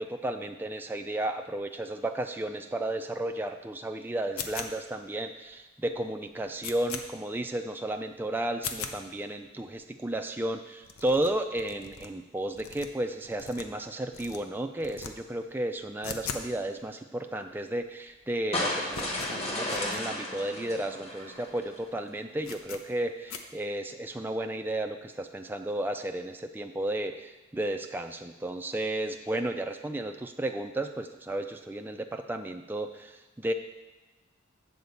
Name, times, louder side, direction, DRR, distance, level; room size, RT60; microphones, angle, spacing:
voice 1, 0.0-33.5, right 1 dB, 10° right, 4 dB, 0.3 m, -33 dB
sound 1, 4.4-5.0 5.5-5.6 5.9-6.0 6.3-7.0 7.5-7.6 7.9-8.0 8.5-9.0 9.5-9.6 9.8-9.9 10.1-10.2 10.4-10.5 10.8-12.1 12.5-13.8 14.1-14.4 14.8-15.1 15.4-16.5 16.8-16.9 17.5-17.6 17.8-18.2 18.4-20.0 20.5-20.6 20.8-20.9 21.4-21.5 21.8-21.9 22.4-22.8 23.3-23.4, left 6 dB, 85° left, 0.7 m, -40 dB
sound 2, 18.5-21.8, left 1 dB, 30° left, 1.3 m, -33 dB
8.1 x 4.2 x 7.0 m, 1.2 s
head